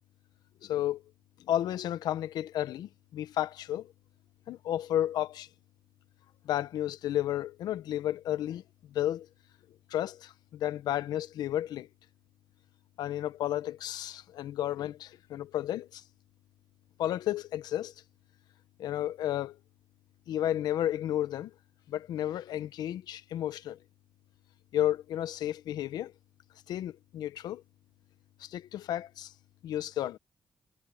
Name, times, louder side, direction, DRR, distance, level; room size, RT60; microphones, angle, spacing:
voice 1, 0.6-1.0 1.4-3.9 4.5-5.5 6.4-8.6 8.9-9.3 9.9-11.9 13.0-16.0 17.0-17.9 18.8-19.6 20.3-21.5 21.9-23.8 24.7-26.1 26.7-27.6 28.4-29.3 29.6-30.2, left 12 dB, 85° left, 1.1 m, -32 dB
supercardioid pair, 45°, 7 cm